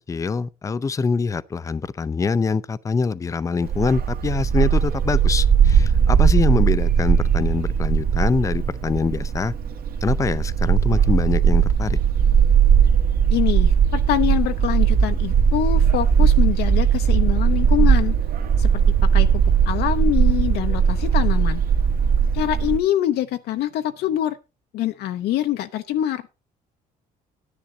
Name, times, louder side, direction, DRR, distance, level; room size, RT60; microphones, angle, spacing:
voice 1, 0.1-9.5 10.0-12.0, left 4 dB, 20° left, 0.5 m, -24 dB
Bark, 3.6-22.8, right 7 dB, 60° right, 1.5 m, -18 dB
voice 2, 13.3-18.1 18.6-18.7 19.0-19.3 19.7-21.6 22.3-24.4 24.7-26.2, left 12 dB, 75° left, 0.8 m, -24 dB
11.0 x 10.0 x 3.9 m
cardioid pair, 110°, 17 cm